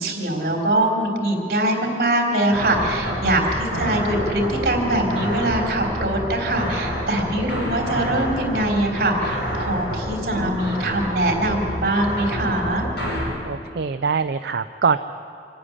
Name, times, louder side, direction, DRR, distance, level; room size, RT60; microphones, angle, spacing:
voice 1, 0.0-12.9, right 1 dB, 55° right, 1 dB, 3.7 m, -22 dB
sound 1, 2.5-13.2, equal, 75° left, 6.0 m, -28 dB
voice 2, 3.7-4.0 10.3-10.6 13.4-15.0, right 5 dB, 75° right, 9 dB, 0.5 m, -24 dB
26.0 x 10.0 x 10.0 m, 2.5 s
head